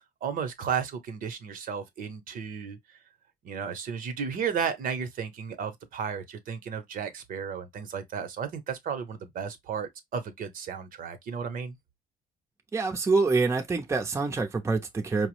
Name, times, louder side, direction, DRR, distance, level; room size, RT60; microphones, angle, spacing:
voice 1, 0.2-3.0 3.4-11.8, right 7 dB, 55° right, 0.8 m, -34 dB
voice 2, 12.7-15.3, right 4 dB, 15° right, 0.6 m, -26 dB
4.6 x 2.0 x 2.9 m
cardioid pair, 110°, 17 cm